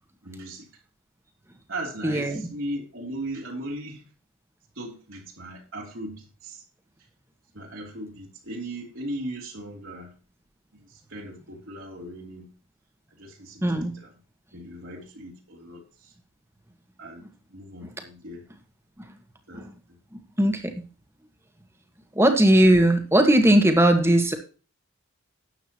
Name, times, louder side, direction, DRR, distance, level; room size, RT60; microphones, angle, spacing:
voice 1, 0.2-0.7 1.7-4.1 4.7-6.6 7.5-10.1 10.9-12.5 13.2-14.1 14.5-16.1 17.0-17.2 17.5-18.4 19.5-19.7, right 1 dB, 60° right, 3.2 m, -37 dB
voice 2, 2.0-2.4 13.6-13.9 20.4-20.6 22.2-24.3, right 1 dB, 10° right, 1.7 m, -18 dB
13.0 x 9.2 x 3.0 m
head